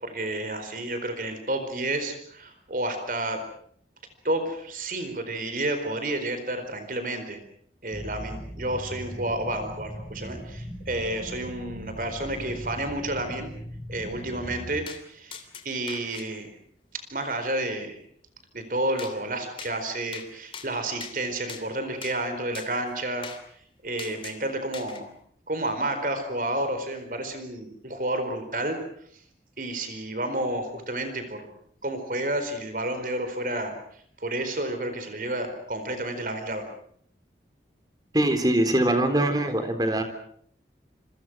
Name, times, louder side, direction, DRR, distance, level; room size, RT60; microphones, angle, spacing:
voice 1, 0.0-3.4 4.2-7.4 7.8-13.5 13.9-16.5 17.1-18.0 18.5-23.3 23.8-25.1 25.5-28.8 29.6-31.5 31.8-33.7 34.2-36.6, right 1 dB, 50° right, 8 dB, 4.4 m, -30 dB
sound 1, 7.9-14.9, equal, 5° left, 2.3 m, -39 dB
sound 2, 14.9-15.0 15.3-16.3 19.0-19.1 19.6-19.7 20.1-20.3 20.5-21.2 21.5-21.6 22.0-22.2 22.5-22.7 23.2-23.4 24.0-24.4 24.7-25.0, left 6 dB, 30° left, 3.1 m, -40 dB
voice 2, 38.1-40.0, right 1 dB, 20° right, 8 dB, 3.7 m, -22 dB
27.5 x 25.5 x 6.3 m, 0.63 s
head